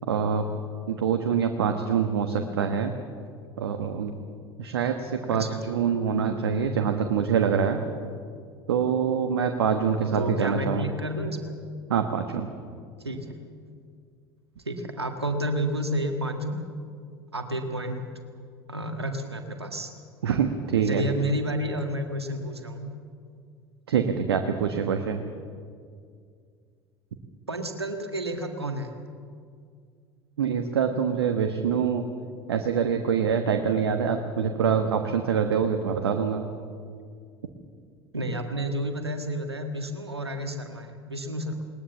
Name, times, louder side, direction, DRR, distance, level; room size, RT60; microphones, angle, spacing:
voice 1, 0.1-0.4 0.9-2.9 3.6-4.1 4.6-7.8 8.7-10.9 11.9-12.5 20.2-21.0 23.9-25.3 30.4-32.1 32.5-36.4, right 7 dB, 75° right, 6 dB, 1.3 m, -25 dB
voice 2, 5.3-5.6 6.1-6.3 10.1-11.6 13.0-13.4 14.7-16.6 17.3-18.0 18.7-19.9 20.9-22.9 27.5-28.9 38.1-41.6, right 1 dB, 90° right, 5 dB, 1.7 m, -30 dB
20.5 x 20.0 x 7.2 m, 2.2 s
figure-of-eight pair, 70°, 13 cm